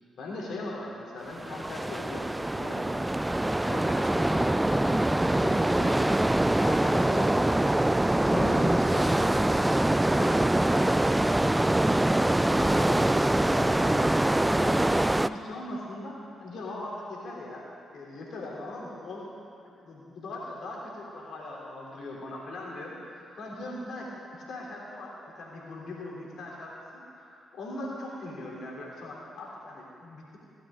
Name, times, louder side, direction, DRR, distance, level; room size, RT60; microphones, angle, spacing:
voice 1, 0.2-3.3 3.6-6.2 6.5-7.7 8.0-11.1 11.4-17.7 17.9-19.2 19.8-30.4, left 2 dB, 65° left, -4 dB, 3.5 m, -39 dB
sound 1, 1.3-15.3, right 1 dB, 15° right, 0.4 m, -24 dB
16.5 x 12.5 x 3.9 m, 2.5 s
hypercardioid pair, 40°, 0 cm